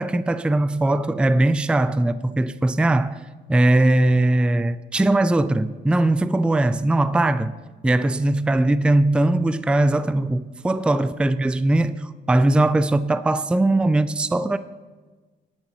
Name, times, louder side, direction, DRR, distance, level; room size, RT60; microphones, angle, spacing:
voice 1, 0.0-3.2 3.5-7.5 7.8-14.6, right 2 dB, 5° right, 0.4 m, -20 dB
17.5 x 9.7 x 3.1 m
cardioid pair, 90°, 20 cm